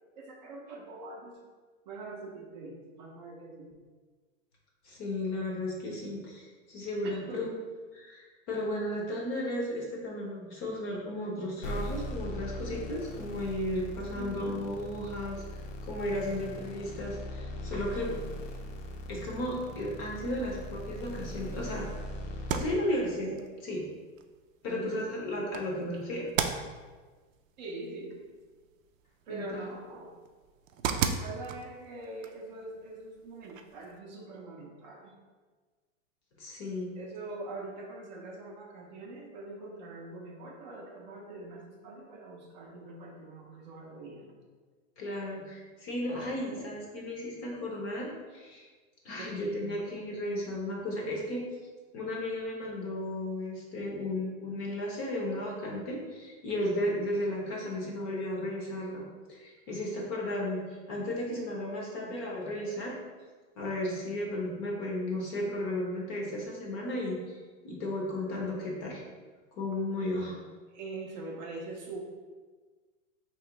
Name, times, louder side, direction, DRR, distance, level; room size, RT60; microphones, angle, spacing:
voice 1, 0.2-1.4 1.9-3.7 7.0-7.5 14.1-14.6 24.7-25.1 27.6-28.2 29.3-30.1 31.2-35.1 36.9-44.4 46.6-46.7 49.1-49.7 61.1-62.1 70.7-72.0, right 3 dB, 35° right, 0 dB, 0.5 m, -43 dB
voice 2, 4.8-7.5 7.9-18.1 19.1-21.9 22.5-23.8 24.6-26.3 29.3-29.7 36.4-37.0 45.0-48.7 49.0-51.4 51.9-60.6 60.9-62.9 63.6-67.4 67.6-69.0 69.6-70.4, left 1 dB, 25° left, -2 dB, 0.6 m, -34 dB
sound 1, 11.6-22.7, left 1 dB, 80° left, 0.7 m, -40 dB
sound 2, 22.3-34.0, right 7 dB, 90° right, 0.5 m, -39 dB
3.0 x 2.9 x 4.5 m, 1.4 s
supercardioid pair, 160°, 38 cm